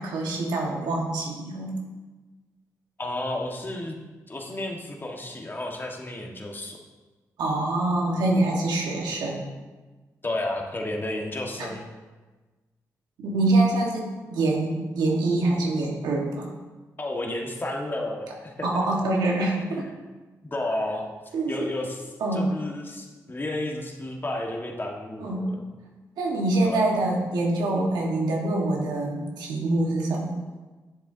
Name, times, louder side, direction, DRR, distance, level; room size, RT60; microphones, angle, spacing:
voice 1, 0.0-1.8 7.4-9.5 11.6-11.7 13.2-16.5 18.6-19.9 21.3-21.7 22.2-22.5 25.2-25.4 26.2-30.3, right 2 dB, 90° right, -1 dB, 1.4 m, -25 dB
voice 2, 3.0-4.0 4.3-6.8 10.2-11.9 17.0-18.9 19.6-19.8 20.4-21.1 21.5-22.1 22.3-25.6 26.6-26.8, left 1 dB, 30° left, 1 dB, 1.5 m, -32 dB
9.8 x 7.3 x 2.7 m, 1.3 s
cardioid pair, 55°, 7 cm